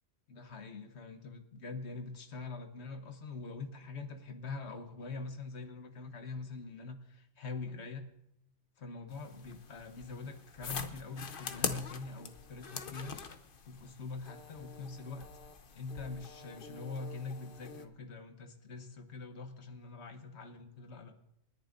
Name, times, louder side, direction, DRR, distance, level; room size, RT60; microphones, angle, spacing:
voice 1, 0.3-8.1 8.8-13.2 13.7-15.3 15.7-21.1, left 4 dB, 85° left, 7 dB, 1.3 m, -44 dB
sound 1, 9.1-17.9, left 5 dB, 55° left, 1.0 m, -44 dB
28.0 x 10.5 x 2.6 m, 0.80 s
omnidirectional pair, 1.1 m